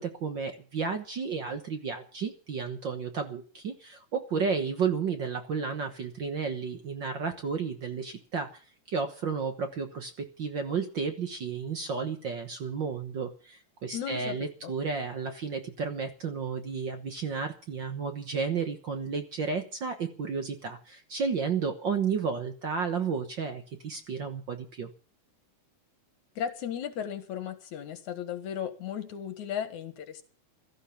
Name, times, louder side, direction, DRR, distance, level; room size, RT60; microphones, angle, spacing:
voice 1, 0.0-8.6 8.9-24.9, right 5 dB, 50° right, 6 dB, 1.6 m, -32 dB
voice 2, 13.9-14.4 14.6-14.7 26.4-30.2, left 9 dB, 75° left, 9 dB, 3.0 m, -35 dB
16.5 x 13.5 x 5.8 m, 0.40 s
omnidirectional pair, 3.4 m